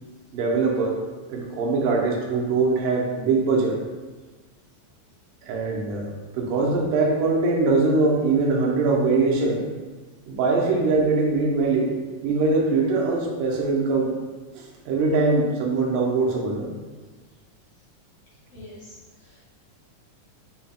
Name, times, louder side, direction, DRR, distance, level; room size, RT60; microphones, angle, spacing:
voice 1, 0.3-1.0 1.3-3.8 5.4-6.1 6.3-9.7 10.3-11.9 12.2-14.1 14.5-16.7, right 3 dB, 85° right, -2 dB, 2.3 m, -22 dB
voice 2, 18.5-19.5, left 2 dB, 60° left, -7 dB, 1.9 m, -46 dB
5.5 x 4.1 x 2.2 m, 1.3 s
omnidirectional pair, 3.8 m